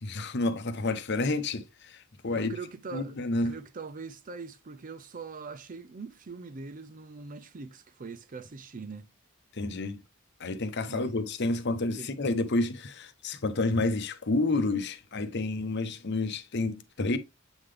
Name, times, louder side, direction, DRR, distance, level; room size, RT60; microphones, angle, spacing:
voice 1, 0.0-2.0 2.2-2.5 2.9-3.5 9.6-10.0 10.4-17.2, left 2 dB, 55° left, 0.8 m, -29 dB
voice 2, 2.3-9.1 10.9-11.1 12.0-12.1, right 4 dB, 40° right, 0.5 m, -42 dB
8.0 x 3.8 x 3.3 m
head